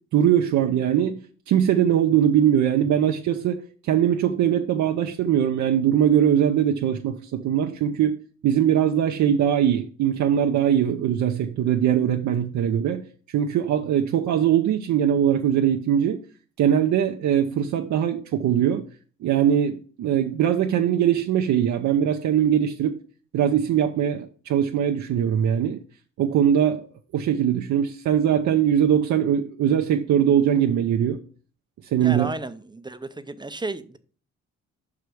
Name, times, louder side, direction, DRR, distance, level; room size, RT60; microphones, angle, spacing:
voice 1, 0.1-8.2 8.4-13.0 13.3-16.2 16.6-18.8 19.2-23.0 23.3-25.8 26.2-26.8 27.1-31.2 31.8-32.3, right 9 dB, 70° right, 0.7 m, -21 dB
voice 2, 32.0-34.0, right 2 dB, 15° right, 0.5 m, -33 dB
5.7 x 4.9 x 6.3 m
cardioid pair, 90°, 30 cm